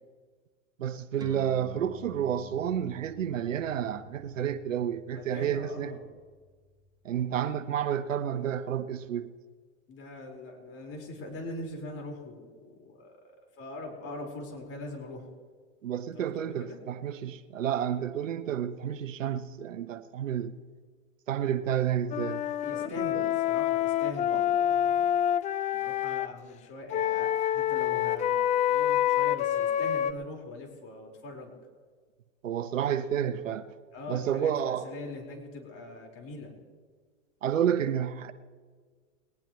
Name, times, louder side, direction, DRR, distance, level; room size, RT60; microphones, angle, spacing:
voice 1, 0.8-6.0 7.0-9.3 15.8-20.5 21.3-22.4 22.8-23.2 24.3-24.4 32.4-33.7 34.1-34.8 37.4-38.3, right 9 dB, 85° right, 0.9 m, -30 dB
sound 1, 1.2-8.0, right 2 dB, 10° right, 1.4 m, -50 dB
voice 2, 5.1-6.1 9.9-15.2 16.1-16.8 22.6-25.1 25.7-31.6 33.9-36.5, left 2 dB, 35° left, 4.6 m, -42 dB
Wind instrument woodwind instrument, 22.1-26.3 26.9-30.1, left 11 dB, 20° left, 0.4 m, -27 dB
20.5 x 19.0 x 3.1 m
hypercardioid pair, 105°, 37 cm